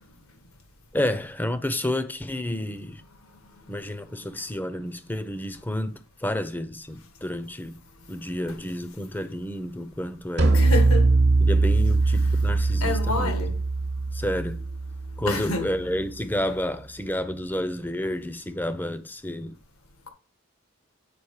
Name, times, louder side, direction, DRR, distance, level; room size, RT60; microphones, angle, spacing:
voice 1, 0.9-3.0 3.7-7.8 8.1-10.7 11.4-13.5 14.1-14.6 15.2-19.6, left 1 dB, 10° left, 0.6 m, -30 dB
sound 1, 10.4-15.8, right 3 dB, 50° right, 1.0 m, -22 dB
voice 2, 10.5-11.1 12.8-13.5 15.3-15.7, left 2 dB, 80° left, 1.7 m, -28 dB
8.6 x 5.1 x 4.8 m
head